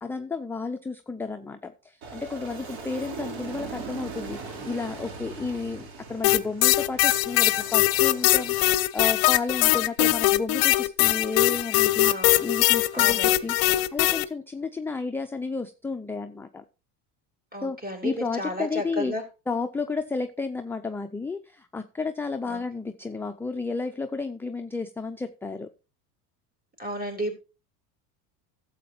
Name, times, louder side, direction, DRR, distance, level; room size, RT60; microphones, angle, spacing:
voice 1, 0.0-4.4 4.6-12.1 12.4-16.6 17.6-17.8 18.0-19.1 19.5-25.7, left 4 dB, 5° left, 6 dB, 0.4 m, -32 dB
Aircraft, 2.0-8.7, right 4 dB, 80° right, 2.7 m, -40 dB
sound 1, 6.2-14.2, left 18 dB, 50° left, 0.7 m, -21 dB
voice 2, 12.0-12.5 12.9-13.3 17.5-18.1 18.4-19.2 22.5-22.6 26.8-27.4, equal, 20° right, 2 dB, 3.4 m, -32 dB
12.5 x 7.8 x 2.8 m, 0.30 s
hypercardioid pair, 95°, 47 cm